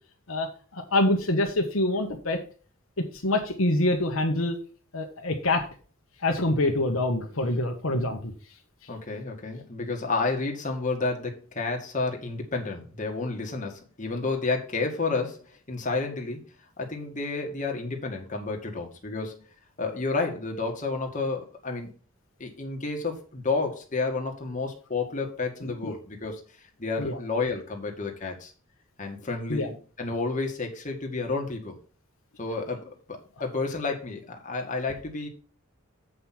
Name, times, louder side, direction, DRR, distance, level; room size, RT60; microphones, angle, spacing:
voice 1, 0.9-2.4 3.2-4.6 4.9-5.6 6.2-8.3 25.8-25.9 27.0-27.2 29.5-29.7, left 2 dB, 70° left, 3 dB, 1.4 m, -25 dB
voice 2, 8.9-15.4 15.7-16.5 16.8-19.3 19.8-21.9 22.4-26.4 26.8-28.5 29.0-31.8 32.4-35.3, left 3 dB, 35° left, 2 dB, 1.8 m, -30 dB
7.7 x 5.4 x 5.8 m, 0.39 s
head